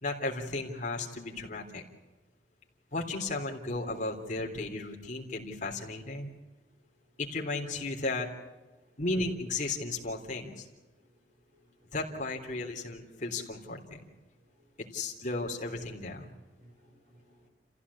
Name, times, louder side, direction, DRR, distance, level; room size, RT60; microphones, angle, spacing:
voice 1, 0.0-1.8 2.9-6.3 7.2-8.3 9.0-10.7 11.9-14.1 14.9-16.3, left 2 dB, 45° left, 3.5 m, -34 dB
voice 2, 11.0-12.0 14.2-14.8 16.3-17.5, equal, 50° right, 5.7 m, -64 dB
28.5 x 15.5 x 8.5 m
head